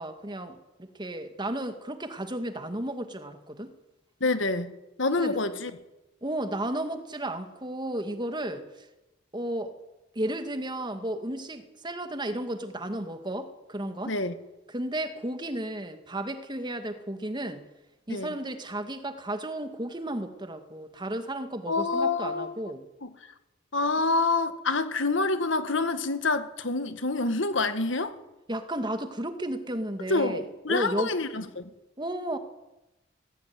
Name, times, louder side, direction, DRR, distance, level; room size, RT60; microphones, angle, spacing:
voice 1, 0.0-3.7 5.2-5.4 6.2-8.9 9.3-9.7 10.2-14.1 14.7-17.6 18.1-22.8 28.5-30.4 30.7-31.2 32.0-32.4, right 1 dB, 25° right, 8 dB, 2.0 m, -33 dB
voice 2, 4.2-4.7 5.0-5.7 14.1-14.4 18.1-18.3 21.7-22.5 23.0-23.3 23.7-28.2 30.1-31.7, left 3 dB, 70° left, 10 dB, 1.9 m, -27 dB
22.0 x 16.5 x 9.4 m, 1.0 s
head